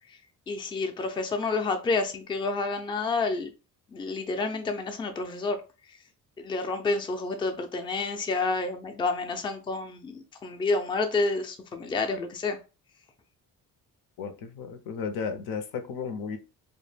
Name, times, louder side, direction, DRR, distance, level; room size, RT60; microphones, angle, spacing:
voice 1, 0.5-3.5 3.9-5.6 5.8-6.0 6.4-12.6, left 3 dB, 15° left, 0.3 m, -29 dB
voice 2, 14.2-16.4, left 5 dB, 85° left, 0.6 m, -34 dB
2.1 x 2.0 x 3.2 m
cardioid pair, 105°, 35 cm